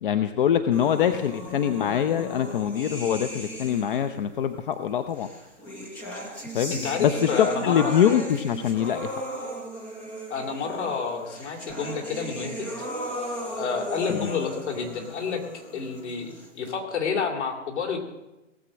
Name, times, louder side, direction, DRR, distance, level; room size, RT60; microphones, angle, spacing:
voice 1, 0.0-5.3 6.5-6.7 7.0-9.2 14.1-14.3, left 9 dB, 45° left, 9 dB, 0.7 m, -24 dB
sound 1, 0.7-4.2 5.2-16.7, equal, 5° left, 0.4 m, -37 dB
voice 2, 6.7-7.9 10.3-12.9 13.5-18.0, left 5 dB, 60° left, 2 dB, 2.8 m, -29 dB
18.0 x 7.5 x 6.2 m, 0.99 s
figure-of-eight pair, 125°, 38 cm